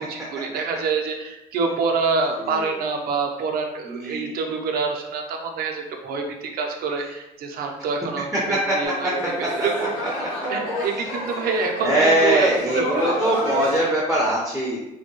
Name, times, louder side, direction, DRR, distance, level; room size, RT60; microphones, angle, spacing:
voice 1, 0.0-9.1 9.4-9.9 10.5-13.2, right 4 dB, 65° right, 2 dB, 0.6 m, -26 dB
voice 2, 2.4-2.8 3.8-4.3 8.3-8.6 9.6-9.7 11.0-11.2 11.8-14.9, right 1 dB, 5° right, -5 dB, 0.7 m, -22 dB
sound 1, 8.8-13.9, equal, 85° left, 1.3 m, -30 dB
3.4 x 2.2 x 2.9 m, 0.91 s
cardioid pair, 110°, 17 cm